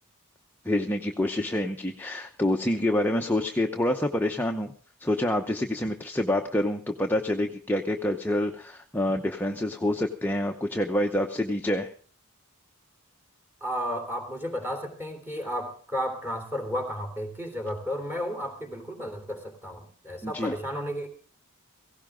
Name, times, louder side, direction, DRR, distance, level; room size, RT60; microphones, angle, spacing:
voice 1, 0.6-4.7 5.0-11.9 20.2-20.5, left 1 dB, 10° left, 3 dB, 0.8 m, -27 dB
voice 2, 13.6-21.1, equal, 10° right, 3 dB, 3.3 m, -33 dB
17.0 x 16.5 x 3.7 m, 0.43 s
head